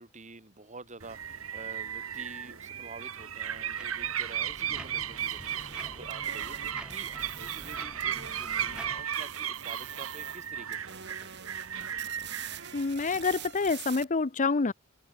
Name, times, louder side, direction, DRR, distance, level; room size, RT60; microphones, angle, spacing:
voice 1, 0.0-11.3, right 3 dB, 35° right, 4.1 m, -48 dB
sound 1, 1.0-13.5, right 9 dB, 85° right, 1.8 m, -36 dB
sound 2, 3.3-9.0, equal, 5° right, 3.7 m, -48 dB
sound 3, 5.0-8.9 9.1-10.5 10.7-14.0, right 9 dB, 55° right, 3.6 m, -46 dB
voice 2, 12.7-14.7, left 4 dB, 40° left, 0.7 m, -27 dB
head